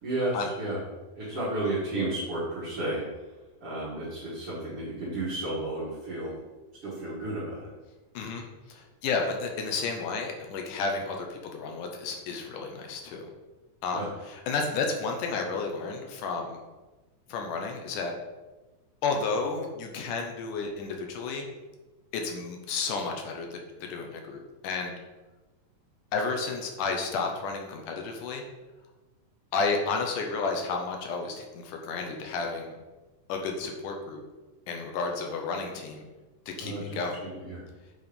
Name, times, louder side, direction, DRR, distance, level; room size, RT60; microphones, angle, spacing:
voice 1, 0.0-0.8 1.2-3.0 3.6-6.4 6.8-7.7 13.9-14.1 36.6-37.6, right 2 dB, 45° right, -9 dB, 2.7 m, -32 dB
voice 2, 8.1-13.3 13.8-16.6 17.3-18.1 19.0-21.5 22.1-25.0 26.1-28.4 29.5-32.8 33.3-34.2 34.7-36.1 36.5-37.2, left 4 dB, 75° left, 2 dB, 2.5 m, -32 dB
8.0 x 4.6 x 5.3 m, 1.2 s
omnidirectional pair, 3.8 m